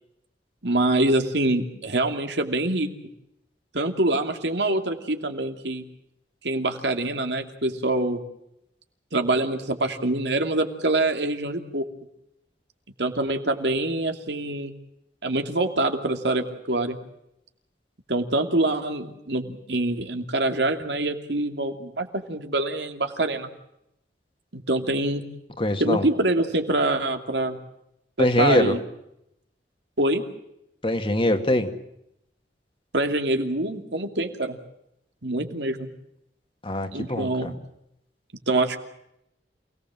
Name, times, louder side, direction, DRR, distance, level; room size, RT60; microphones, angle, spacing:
voice 1, 0.6-2.9 3.7-5.8 6.4-8.2 9.1-11.9 13.0-14.7 15.2-17.0 18.1-23.5 24.5-25.2 25.8-27.6 28.2-28.8 30.0-30.2 32.9-34.6 35.2-35.9 36.9-37.6 38.5-38.8, right 2 dB, 75° right, 6 dB, 2.7 m, -25 dB
voice 2, 25.6-26.1 28.2-28.8 30.8-31.7 36.6-37.5, left 1 dB, 30° left, 7 dB, 2.1 m, -23 dB
28.5 x 18.5 x 7.6 m, 0.81 s
head